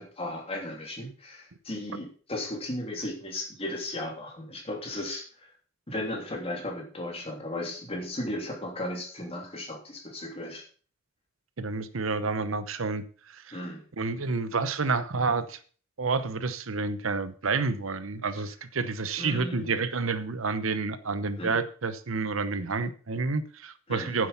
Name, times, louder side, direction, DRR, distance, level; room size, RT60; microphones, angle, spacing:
voice 1, 0.0-5.5 5.9-10.6 13.5-13.8 19.2-19.8 21.4-21.6 23.9-24.2, left 1 dB, 30° left, 0 dB, 3.2 m, -35 dB
voice 2, 11.6-13.6 14.0-15.6 16.0-24.3, right 4 dB, 75° right, 13 dB, 0.9 m, -29 dB
9.7 x 7.7 x 5.8 m, 0.41 s
head